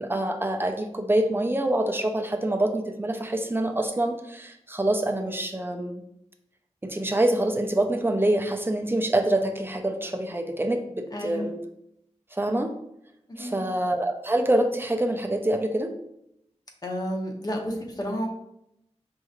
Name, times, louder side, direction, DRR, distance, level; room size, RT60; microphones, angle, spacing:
voice 1, 0.0-6.0 6.8-11.6 12.3-12.7 13.4-15.9, right 1 dB, 20° right, 5 dB, 0.4 m, -26 dB
voice 2, 11.1-11.5 13.3-13.6 16.8-18.3, equal, 35° left, 1 dB, 0.8 m, -31 dB
5.2 x 3.0 x 2.4 m, 0.78 s
wide cardioid pair, 95°, 12 cm